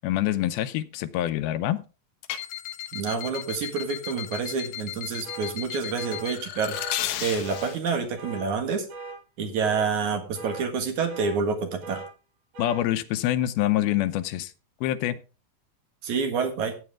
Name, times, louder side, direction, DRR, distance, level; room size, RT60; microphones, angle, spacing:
voice 1, 0.0-1.9 12.6-14.5 14.8-15.2, left 13 dB, 85° left, 12 dB, 2.6 m, -26 dB
sound 1, 2.2-7.8, left 12 dB, 70° left, 2.1 m, -35 dB
voice 2, 2.9-6.8 7.2-8.9 9.4-12.0 16.0-16.8, right 5 dB, 60° right, 5 dB, 2.8 m, -28 dB
sound 2, 5.2-5.5 6.0-6.2 6.7-7.0 7.4-7.7 8.2-8.4 8.9-9.2 9.6-9.9 10.4-10.6 11.1-11.4 11.8-12.1 12.5-12.8, right 3 dB, 75° right, 5.9 m, -39 dB
14.5 x 8.9 x 3.5 m, 0.33 s
omnidirectional pair, 4.2 m